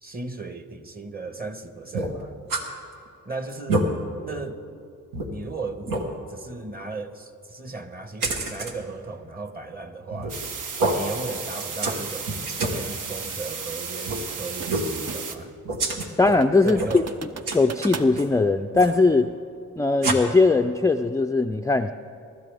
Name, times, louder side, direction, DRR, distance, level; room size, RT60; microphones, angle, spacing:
voice 1, 0.0-2.4 3.2-3.9 4.2-4.6 5.3-10.4 10.9-12.4 12.7-15.5 16.6-17.1, right 3 dB, 30° right, 8 dB, 1.3 m, -36 dB
sound 1, 1.9-2.7 3.1-3.2 3.5-3.9 4.5-4.6 5.1-5.3 5.9-6.1 8.2-8.7 10.1-10.5 10.8-11.0 11.6-12.0 12.3-12.8 14.0-14.2 14.7-14.9 15.6-16.4 16.7-17.1 17.5-18.3 18.7-19.0 20.0-20.1, right 2 dB, 90° right, 1.5 m, -27 dB
sound 2, 10.3-15.4, right 5 dB, 70° right, 1.1 m, -34 dB
sound 3, 12.6-12.8 14.1-15.5 15.8-15.9 16.4-18.2, right 5 dB, 50° right, 0.9 m, -38 dB
voice 2, 16.2-17.0 17.5-19.3 19.8-21.9, left 3 dB, 10° left, 6 dB, 0.4 m, -20 dB
23.5 x 12.5 x 3.5 m, 2.6 s
cardioid pair, 65°, 33 cm